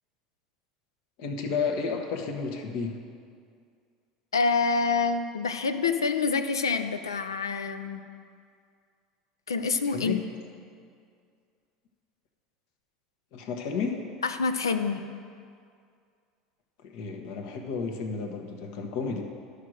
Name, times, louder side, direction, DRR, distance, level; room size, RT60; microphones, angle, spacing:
voice 1, 1.2-3.0 9.8-10.3 13.3-14.1 16.8-19.2, left 5 dB, 60° left, 4 dB, 1.1 m, -32 dB
voice 2, 4.3-8.0 9.5-10.2 14.2-15.0, left 4 dB, 85° left, 9 dB, 0.5 m, -27 dB
12.0 x 5.1 x 6.3 m, 2.2 s
hypercardioid pair, 75°, 2 cm